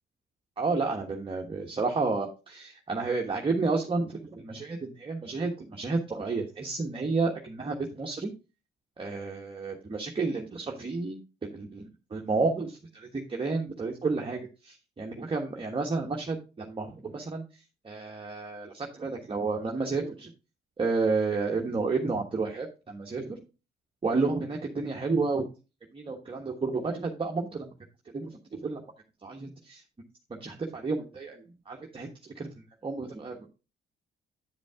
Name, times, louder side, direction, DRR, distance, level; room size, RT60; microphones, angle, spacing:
voice 1, 0.6-8.3 9.0-17.4 17.8-20.3 20.8-23.4 24.0-25.5 25.9-27.7 28.1-28.8 29.2-29.8 30.3-32.1 32.3-33.5, right 3 dB, 25° right, 1 dB, 1.3 m, -31 dB
9.6 x 5.1 x 3.6 m, 0.30 s
cardioid pair, 90°, 20 cm